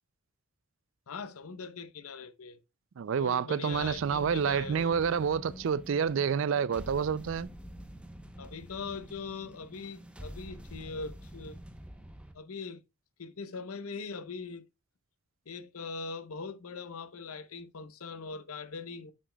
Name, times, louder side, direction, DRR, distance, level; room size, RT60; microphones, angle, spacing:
voice 1, 1.1-2.6 3.2-5.2 8.4-11.6 12.3-12.8 13.2-14.7 15.5-19.1, left 4 dB, 80° left, 0.8 m, -41 dB
voice 2, 3.0-7.5, right 6 dB, 60° right, 0.3 m, -28 dB
sound 1, 3.7-12.3, equal, 5° right, 0.8 m, -47 dB
10.0 x 7.5 x 2.2 m
head